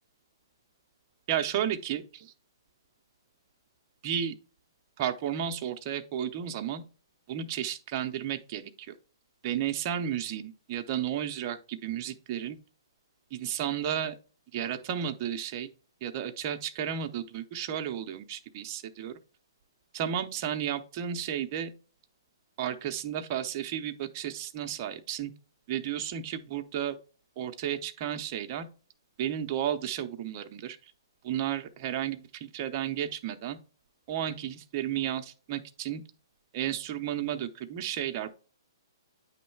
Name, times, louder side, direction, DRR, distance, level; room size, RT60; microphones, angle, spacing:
voice 1, 1.3-2.0 4.0-4.3 5.0-6.8 7.3-9.0 9.4-12.6 13.3-14.1 14.5-15.7 16.0-19.1 19.9-21.7 22.6-25.3 25.7-26.9 27.4-28.7 29.2-30.8 31.2-33.6 34.1-36.0 36.5-38.3, right 10 dB, 30° right, 0.6 m, -33 dB
9.2 x 3.1 x 4.5 m
hypercardioid pair, 165°, 2 cm